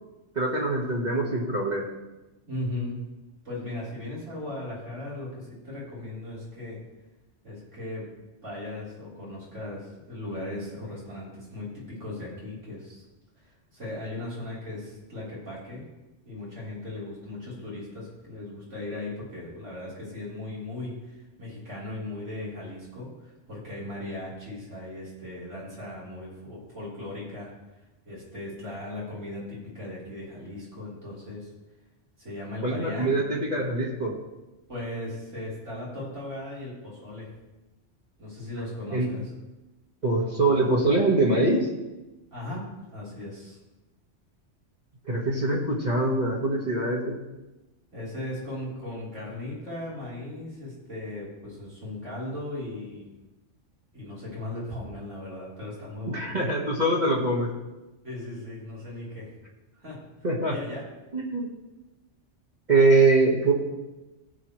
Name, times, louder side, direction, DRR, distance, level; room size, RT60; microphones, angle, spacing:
voice 1, 0.3-1.9 32.6-34.1 38.9-39.1 40.0-41.7 45.0-47.2 56.1-57.5 60.2-60.5 61.1-61.5 62.7-63.5, right 2 dB, 35° right, -5 dB, 1.7 m, -23 dB
voice 2, 2.5-3.0 3.4-6.8 7.4-8.1 8.4-13.0 13.7-15.8 16.2-27.5 28.0-31.5 32.2-33.1 34.7-37.3 38.2-39.3 42.3-42.6 42.9-43.6 47.9-53.1 53.9-56.3 58.0-59.3 59.8-60.0 60.5-60.8, left 1 dB, 90° right, -8 dB, 4.6 m, -37 dB
17.5 x 7.5 x 3.3 m, 1.1 s
omnidirectional pair, 1.2 m